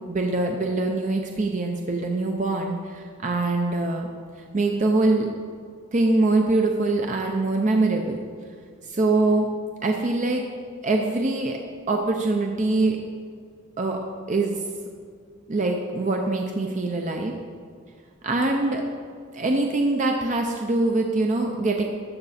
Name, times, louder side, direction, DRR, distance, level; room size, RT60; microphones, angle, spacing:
voice 1, 0.1-4.1 4.5-5.3 5.9-8.2 8.8-9.5 9.8-10.4 10.8-11.6 11.9-13.0 13.8-14.0 14.3-14.6 15.5-17.3 18.2-18.8 19.3-21.8, right 2 dB, 35° right, 2 dB, 0.6 m, -23 dB
13.5 x 5.9 x 4.2 m, 2.1 s
head